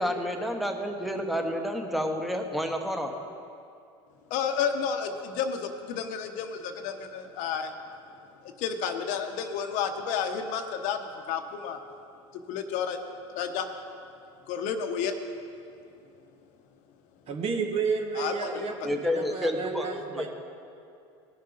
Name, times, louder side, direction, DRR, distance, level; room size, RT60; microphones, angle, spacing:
voice 1, 0.0-3.1 18.4-18.5 18.8-20.3, equal, ahead, 3 dB, 1.2 m, -30 dB
voice 2, 4.3-7.7 8.4-11.8 12.5-13.0 13.3-13.7 14.5-15.1 18.1-18.5, left 7 dB, 60° left, 6 dB, 0.9 m, -31 dB
voice 3, 17.3-20.3, right 5 dB, 45° right, 3 dB, 1.5 m, -31 dB
17.5 x 6.5 x 4.0 m, 2.5 s
supercardioid pair, 100°, 15 cm